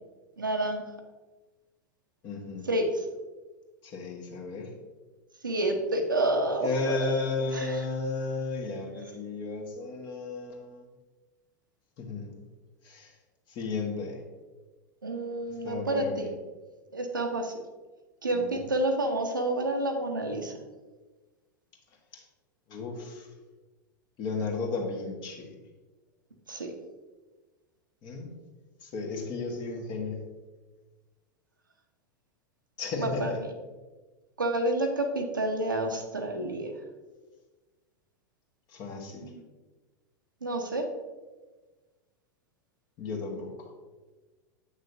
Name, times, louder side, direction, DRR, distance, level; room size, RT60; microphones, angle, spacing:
voice 1, 0.4-0.9 2.6-3.0 5.4-7.2 7.5-7.8 15.0-16.3 16.9-17.5 18.2-20.6 26.5-26.7 33.0-33.3 34.4-36.7 39.2-39.3 40.4-40.9, right 1 dB, 85° right, 3 dB, 0.9 m, -29 dB
voice 2, 2.2-2.7 3.8-4.7 6.6-10.8 12.0-12.3 12.8-13.1 13.5-14.2 15.6-16.3 18.3-18.6 22.1-22.2 22.7-23.3 24.2-25.5 28.0-28.3 28.8-30.2 32.8-33.4 38.7-39.2 43.0-43.5, left 3 dB, 45° left, 1 dB, 1.6 m, -33 dB
8.2 x 6.1 x 2.7 m, 1.3 s
figure-of-eight pair, 90°, 10 cm